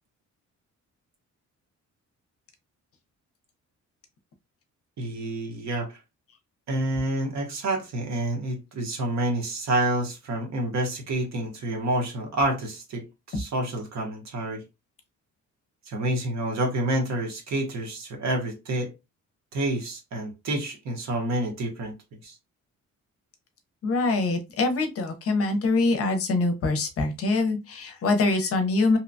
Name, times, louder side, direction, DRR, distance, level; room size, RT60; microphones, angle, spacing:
voice 1, 5.0-6.0 6.7-14.6 15.9-18.9 19.5-22.3, right 1 dB, 60° right, 0.9 m, -28 dB
voice 2, 23.8-29.0, left 3 dB, 50° left, 0.6 m, -24 dB
2.8 x 2.2 x 2.5 m
cardioid pair, 170°, 30 cm